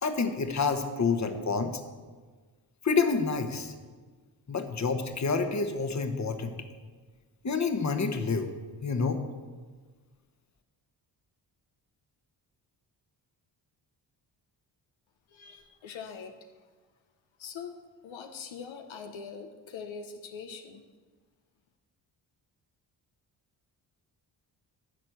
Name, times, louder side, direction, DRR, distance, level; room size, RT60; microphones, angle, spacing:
voice 1, 0.0-1.8 2.8-3.7 4.5-6.5 7.4-8.5 8.8-9.2, left 4 dB, 35° left, 7 dB, 1.3 m, -28 dB
voice 2, 15.3-16.3 17.4-20.8, left 6 dB, 75° left, 5 dB, 1.0 m, -43 dB
13.0 x 4.4 x 8.1 m, 1.4 s
supercardioid pair, 55°, 47 cm